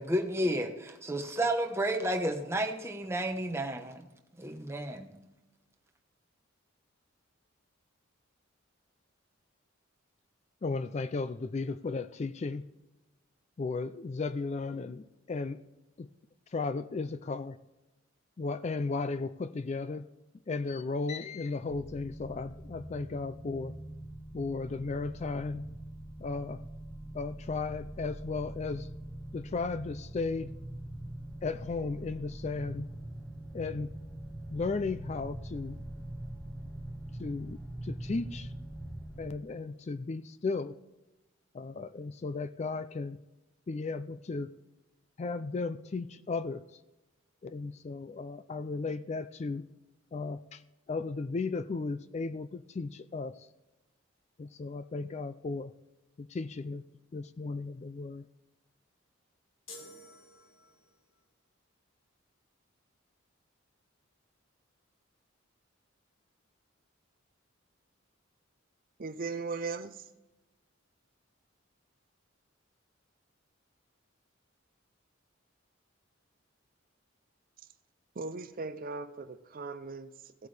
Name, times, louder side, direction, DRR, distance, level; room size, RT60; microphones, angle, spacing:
voice 1, 0.0-4.0 4.4-5.1, right 1 dB, 15° right, 4 dB, 1.0 m, -31 dB
voice 2, 10.6-12.7 13.6-15.6 16.0-16.1 16.5-17.6 18.4-20.1 20.5-23.7 24.3-25.7 26.2-26.6 27.1-28.9 29.3-30.5 31.4-32.9 33.5-34.0 34.5-35.8 37.2-38.5 39.2-40.8 41.5-43.2 43.7-44.5 45.2-46.8 47.4-49.7 50.1-50.6 50.9-53.5 54.4-55.7 56.2-56.8 57.1-58.3, left 3 dB, 35° left, 13 dB, 0.3 m, -35 dB
sound 1, 21.6-39.3, right 1 dB, 5° left, 1.9 m, -43 dB
sound 2, 59.7-61.0, left 2 dB, 75° left, 1.8 m, -50 dB
voice 3, 69.0-70.1 78.2-80.5, right 4 dB, 45° right, 12 dB, 0.5 m, -38 dB
17.0 x 8.3 x 3.3 m, 1.0 s
head